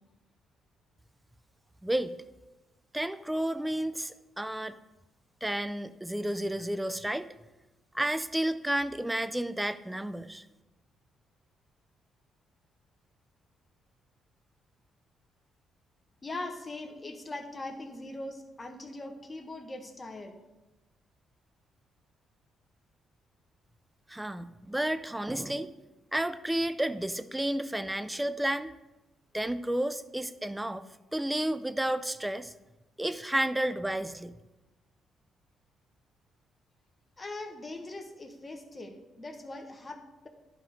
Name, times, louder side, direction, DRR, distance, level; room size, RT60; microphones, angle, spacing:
voice 1, 1.8-2.2 2.9-4.8 5.4-7.3 7.9-10.5 24.1-25.7 26.1-28.7 29.3-30.8 31.1-32.5 33.0-34.4, right 1 dB, 10° right, 13 dB, 0.5 m, -31 dB
voice 2, 16.2-20.4 37.2-40.3, left 2 dB, 25° left, 4 dB, 1.3 m, -41 dB
11.0 x 4.4 x 4.9 m, 1.1 s
cardioid pair, 90°, 0 cm